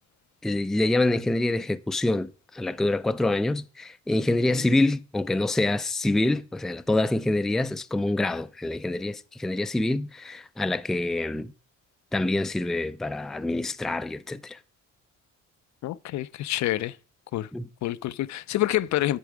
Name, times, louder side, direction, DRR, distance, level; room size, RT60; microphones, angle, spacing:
voice 1, 0.4-11.5 12.1-14.6 17.5-17.7, left 2 dB, ahead, 0.3 m, -26 dB
voice 2, 15.8-17.0 17.3-17.5 17.8-19.2, left 14 dB, 65° left, 0.5 m, -27 dB
8.2 x 6.8 x 4.9 m
cardioid pair, 90°, 30 cm